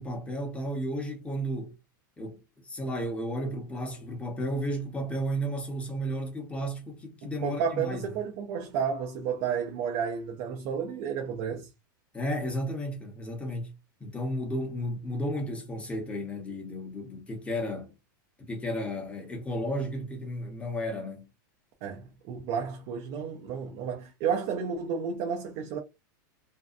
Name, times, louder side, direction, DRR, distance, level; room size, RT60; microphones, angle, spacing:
voice 1, 0.0-1.7 2.2-8.1 12.1-13.7 14.0-17.9 18.5-21.3, equal, 10° left, 0.9 m, -33 dB
voice 2, 7.2-11.7 21.8-25.8, right 7 dB, 45° right, 0.6 m, -32 dB
2.6 x 2.2 x 2.4 m
supercardioid pair, 135°, 11 cm